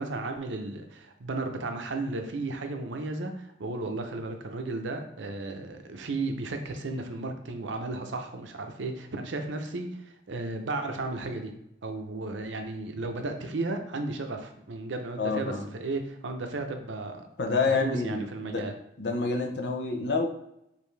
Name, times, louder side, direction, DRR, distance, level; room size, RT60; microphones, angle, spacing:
voice 1, 0.0-17.3 17.6-18.7, right 2 dB, 85° right, 5 dB, 0.6 m, -34 dB
voice 2, 15.2-15.6 17.4-18.7 19.0-20.3, left 4 dB, 65° left, 3 dB, 0.6 m, -28 dB
5.1 x 2.7 x 3.3 m, 0.79 s
head